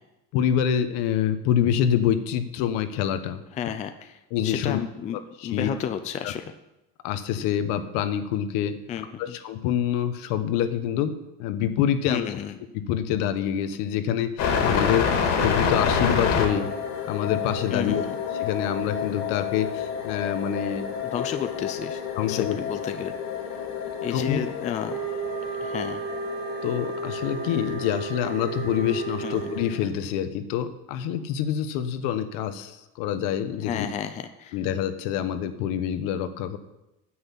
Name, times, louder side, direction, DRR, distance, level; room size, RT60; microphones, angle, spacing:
voice 1, 0.3-3.4 4.3-4.8 5.4-5.7 6.2-6.3 7.0-8.7 9.2-12.3 12.7-15.1 15.4-16.7 17.1-18.0 18.4-20.9 22.2-22.6 24.1-24.4 26.6-33.9 34.5-36.6, left 9 dB, 65° left, 10 dB, 1.2 m, -26 dB
voice 2, 3.5-5.2 5.4-6.4 8.9-9.4 12.1-12.6 17.7-18.1 21.1-23.1 24.0-25.0 25.6-26.0 29.2-29.5 33.7-34.6, left 9 dB, 20° left, 8 dB, 0.4 m, -32 dB
sound 1, 14.4-29.9, left 6 dB, 45° left, 2.3 m, -29 dB
sound 2, 24.9-29.8, right 6 dB, 85° right, 3.8 m, -33 dB
9.8 x 7.9 x 8.6 m, 0.93 s
cardioid pair, 170°, 36 cm